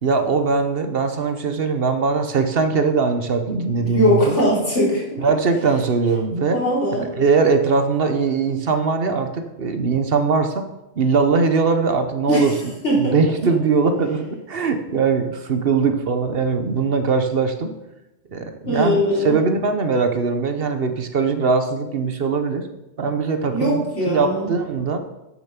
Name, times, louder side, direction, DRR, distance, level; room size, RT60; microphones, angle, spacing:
voice 1, 0.0-4.4 5.2-6.6 6.9-10.6 11.0-12.5 13.0-17.7 18.3-22.7 23.0-25.0, right 4 dB, 60° right, 7 dB, 1.1 m, -21 dB
voice 2, 3.8-5.2 6.5-7.1 12.3-12.5 12.8-13.2 18.7-19.4 23.5-24.5, equal, 85° left, -4 dB, 3.7 m, -20 dB
9.0 x 7.0 x 5.9 m, 0.95 s
omnidirectional pair, 1.2 m